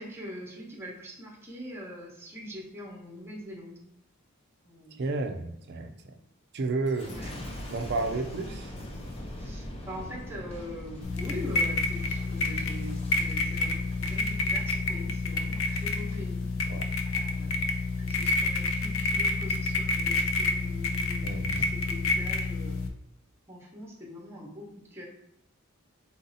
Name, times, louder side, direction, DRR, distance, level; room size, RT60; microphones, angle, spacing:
voice 1, 0.0-3.8 4.6-5.0 7.1-7.3 9.4-16.5 17.1-17.7 18.0-22.8 23.5-25.0, left 1 dB, 10° right, -2 dB, 0.9 m, -43 dB
voice 2, 5.0-6.1 6.5-7.2 7.7-8.7 16.7-16.9 21.2-21.7, right 3 dB, 50° right, 6 dB, 0.5 m, -32 dB
Boom, 6.9-16.2 16.7-17.2, left 1 dB, 25° left, 0.6 m, -43 dB
sound 1, 11.0-22.9, left 3 dB, 65° left, 0.6 m, -29 dB
4.1 x 2.7 x 3.9 m, 0.80 s
head